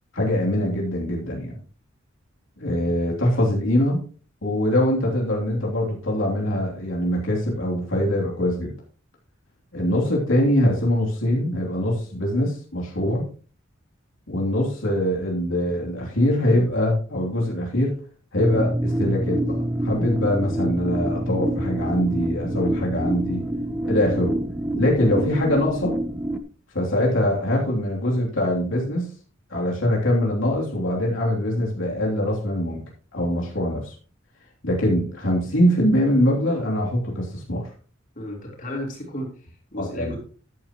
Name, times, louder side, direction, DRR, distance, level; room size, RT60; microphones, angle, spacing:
voice 1, 0.1-1.5 2.6-4.0 4.4-8.7 9.7-13.2 14.3-17.9 18.3-19.5 19.8-23.4 23.8-24.4 24.7-26.0 26.7-29.1 29.5-32.8 33.1-33.9 34.6-37.6 39.8-40.1, left 1 dB, 85° left, -2 dB, 3.0 m, -23 dB
sound 1, 18.4-26.4, right 1 dB, 5° right, 0.8 m, -26 dB
voice 2, 38.2-40.2, left 1 dB, 45° left, -1 dB, 3.8 m, -34 dB
13.0 x 9.7 x 3.0 m, 0.39 s
head